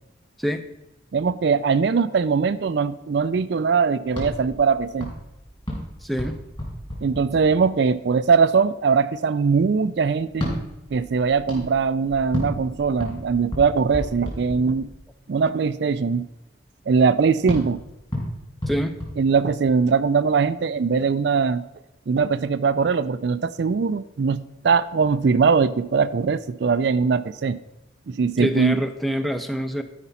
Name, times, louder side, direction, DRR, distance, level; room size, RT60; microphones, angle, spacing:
voice 1, 1.1-5.1 7.0-10.5 10.9-14.9 15.3-16.3 16.9-17.8 19.2-21.6 22.1-27.6 28.1-28.8, right 5 dB, 60° right, 14 dB, 0.4 m, -21 dB
sound 1, 4.1-7.9 10.3-15.1 17.5-19.9, equal, 25° left, 3.5 m, -33 dB
voice 2, 6.0-6.4 18.7-19.0 28.4-29.8, equal, ahead, 8 dB, 0.5 m, -25 dB
12.5 x 5.0 x 5.6 m, 0.94 s
head